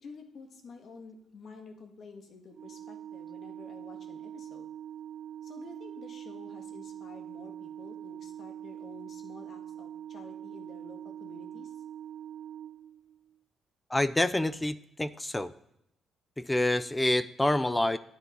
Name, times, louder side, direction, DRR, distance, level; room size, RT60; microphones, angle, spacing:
voice 1, 0.0-4.7 5.4-11.7, left 4 dB, 55° left, 4 dB, 1.7 m, -50 dB
Organ, 2.5-13.4, right 10 dB, 65° right, 0.4 m, -44 dB
voice 2, 13.9-15.5 16.4-18.0, left 1 dB, 10° left, 15 dB, 0.4 m, -27 dB
9.9 x 9.3 x 3.9 m, 0.81 s
cardioid pair, 90°, 0 cm